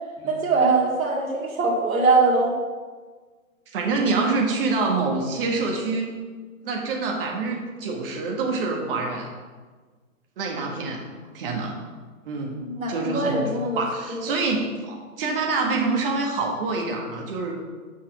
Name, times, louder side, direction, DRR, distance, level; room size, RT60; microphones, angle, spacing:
voice 1, 0.3-2.5 12.5-13.8 14.1-14.3 15.2-15.3, right 3 dB, 70° right, -2 dB, 2.3 m, -22 dB
voice 2, 3.7-6.1 6.6-9.3 10.4-11.1 11.3-11.7 12.3-12.6 12.9-13.4 13.8-17.5, right 3 dB, 40° right, 0 dB, 1.7 m, -26 dB
6.5 x 5.9 x 5.7 m, 1.4 s
figure-of-eight pair, 135°, 43 cm